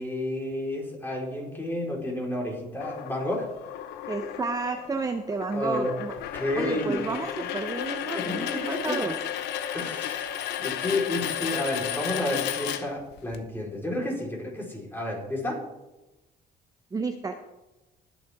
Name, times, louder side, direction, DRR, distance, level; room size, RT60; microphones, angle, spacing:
voice 1, 0.0-3.5 5.5-5.9 6.3-7.1 8.1-9.0 9.7-10.3 10.6-15.6, left 1 dB, 10° left, -2 dB, 4.2 m, -31 dB
sound 1, 2.8-13.4, left 10 dB, 80° left, 1.0 m, -33 dB
voice 2, 4.1-6.1 6.5-9.2 16.9-17.3, right 4 dB, 20° right, 5 dB, 0.8 m, -31 dB
20.5 x 7.2 x 3.6 m, 1.0 s
cardioid pair, 110°, 17 cm